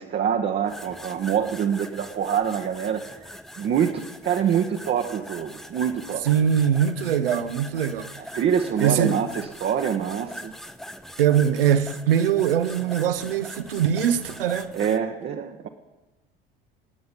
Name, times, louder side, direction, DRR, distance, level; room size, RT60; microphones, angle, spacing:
voice 1, 0.0-3.3 3.6-6.3 8.3-10.5 14.7-15.7, right 8 dB, 35° right, 1.2 m, -25 dB
sound 1, 0.7-15.0, equal, ahead, 0.8 m, -41 dB
voice 2, 6.2-8.1 8.8-9.2 11.2-14.7, right 9 dB, 70° right, 1.1 m, -22 dB
26.5 x 9.5 x 5.2 m
figure-of-eight pair, 65°, 29 cm